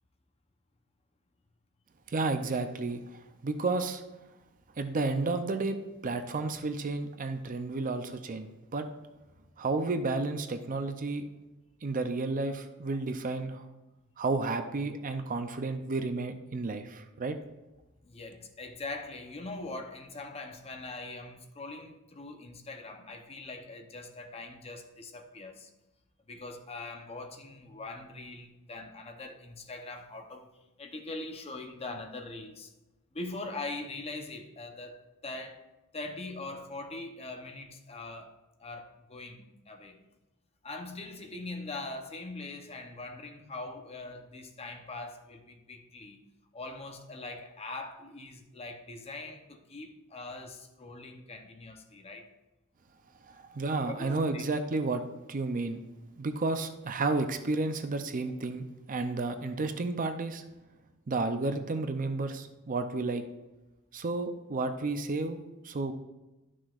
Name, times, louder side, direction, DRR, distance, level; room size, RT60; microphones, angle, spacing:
voice 1, 2.1-4.0 4.8-5.8 6.0-8.9 9.6-11.3 11.8-13.6 14.2-17.4 53.3-55.0 55.3-55.8 56.2-60.4 61.1-63.2 63.9-65.9, right 3 dB, 40° right, 0.5 m, -32 dB
voice 2, 18.0-25.7 26.3-30.5 30.8-32.7 33.1-35.6 35.9-40.0 40.6-46.2 46.5-52.3 53.8-54.4, left 2 dB, 30° left, 0.8 m, -42 dB
12.0 x 6.2 x 2.4 m
head